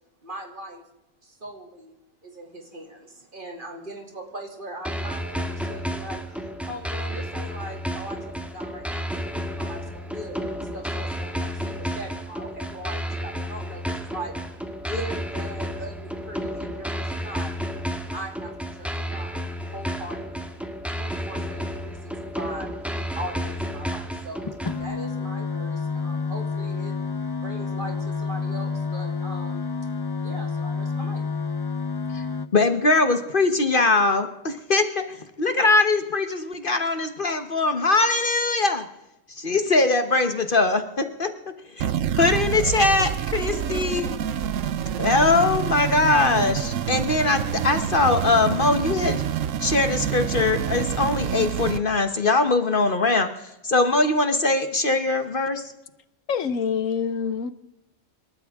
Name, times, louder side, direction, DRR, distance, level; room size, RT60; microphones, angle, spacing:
voice 1, 0.2-0.8 1.2-1.9 2.2-17.5 18.1-18.5 18.8-19.4 19.7-20.5 21.0-27.0 27.4-29.7 30.2-31.2, right 1 dB, 40° right, 2.8 m, -39 dB
sound 1, 4.8-24.8, equal, ahead, 1.5 m, -31 dB
sound 2, 24.5-32.5, left 4 dB, 30° left, 0.5 m, -29 dB
voice 2, 32.5-38.9 39.4-41.3 41.8-41.9 42.2-44.1 45.0-49.2 49.6-55.6, left 3 dB, 45° left, 1.2 m, -21 dB
sound 3, 41.8-51.8, right 9 dB, 80° right, 1.1 m, -27 dB
voice 3, 56.3-57.5, left 6 dB, 85° left, 1.3 m, -26 dB
27.5 x 13.0 x 3.6 m
omnidirectional pair, 1.3 m